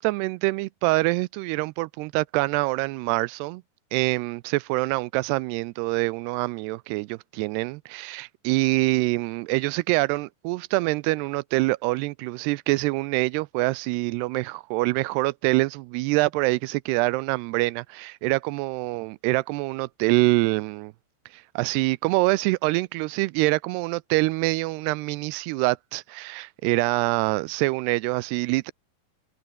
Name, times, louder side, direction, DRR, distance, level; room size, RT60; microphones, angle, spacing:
voice 1, 0.0-3.6 3.9-20.9 21.3-28.7, right 22 dB, 85° right, 2.6 m, -25 dB
omnidirectional pair, 4.8 m